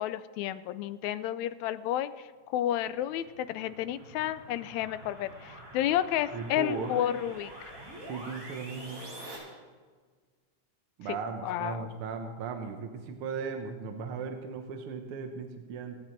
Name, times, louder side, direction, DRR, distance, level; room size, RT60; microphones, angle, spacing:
voice 1, 0.0-2.1 2.5-7.5 11.1-11.2 11.4-11.9, left 12 dB, 80° left, 14 dB, 1.8 m, -31 dB
sound 1, 2.8-9.4, right 1 dB, 25° right, 4.5 m, -47 dB
voice 2, 6.3-6.9 8.0-9.0 11.0-15.9, right 5 dB, 60° right, 5 dB, 1.5 m, -37 dB
25.5 x 9.1 x 4.5 m, 1.5 s
omnidirectional pair, 3.5 m